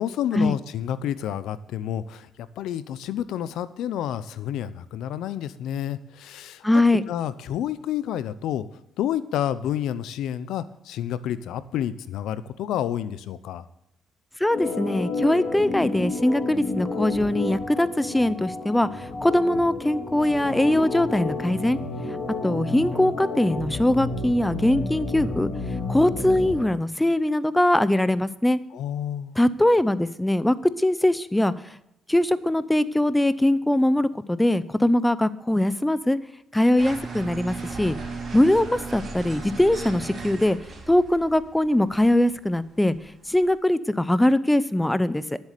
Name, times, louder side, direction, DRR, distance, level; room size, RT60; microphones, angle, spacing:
voice 1, 0.0-6.7 7.1-8.6 9.0-13.7 28.7-29.4, left 10 dB, 85° left, 15 dB, 0.7 m, -29 dB
voice 2, 6.6-7.0 14.4-21.8 22.4-25.5 25.9-28.6 29.4-31.7 32.1-36.2 36.5-38.0 38.3-40.6 40.9-43.0 43.3-45.2, left 1 dB, 10° left, 16 dB, 0.6 m, -21 dB
Organ, 14.5-26.6, left 3 dB, 60° left, 2.1 m, -31 dB
sound 1, 36.8-43.5, right 4 dB, 45° right, 3.2 m, -37 dB
10.5 x 7.9 x 6.7 m, 0.82 s
cardioid pair, 90°, 0 cm